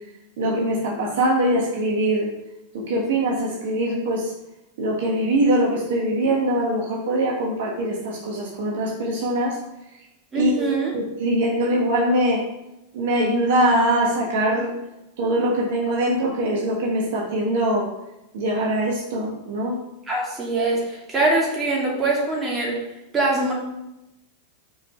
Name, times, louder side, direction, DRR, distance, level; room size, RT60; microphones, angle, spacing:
voice 1, 0.4-2.3 2.7-4.3 4.8-9.6 10.3-12.4 12.9-14.7 15.2-17.9 18.3-19.8, right 1 dB, 55° right, -2 dB, 1.4 m, -22 dB
voice 2, 10.3-10.9 20.1-22.8 23.1-23.5, right 2 dB, 20° right, -3 dB, 2.7 m, -23 dB
5.9 x 5.0 x 5.6 m, 0.91 s
figure-of-eight pair, 90°, 0 cm